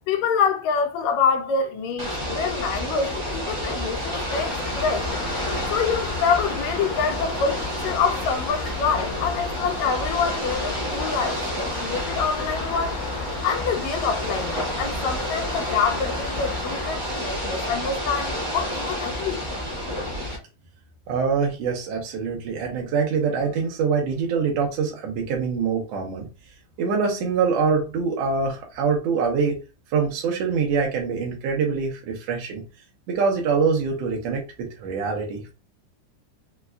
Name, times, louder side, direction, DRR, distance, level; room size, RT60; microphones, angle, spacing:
voice 1, 0.1-5.1 5.7-13.0 13.4-19.5, left 5 dB, 80° left, 1.7 m, -26 dB
Ocean / Boat Water vehicle, 2.0-20.4, equal, 50° right, 1.1 m, -30 dB
sound 1, 4.3-16.9, left 5 dB, 50° left, 1.9 m, -35 dB
voice 2, 21.1-26.3 26.8-29.6 29.9-32.6 33.1-35.5, right 5 dB, 75° right, 1.5 m, -24 dB
5.1 x 2.3 x 2.2 m
omnidirectional pair, 3.6 m